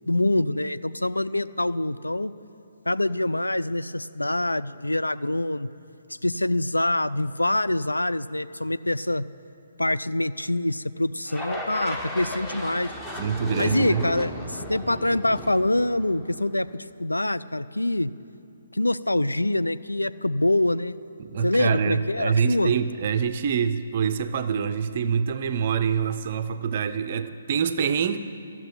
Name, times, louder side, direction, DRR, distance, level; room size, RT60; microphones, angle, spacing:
voice 1, 0.1-2.3 2.9-5.7 6.2-9.2 9.8-12.9 13.6-16.7 17.0-18.1 18.7-21.0 21.4-22.7, left 1 dB, 80° left, 14 dB, 0.4 m, -25 dB
sound 1, 11.3-16.6, left 1 dB, 10° left, 1.1 m, -35 dB
voice 2, 13.2-14.0 21.2-28.2, right 7 dB, 40° right, 10 dB, 0.5 m, -25 dB
13.0 x 7.2 x 9.5 m, 2.8 s
figure-of-eight pair, 135°, 0 cm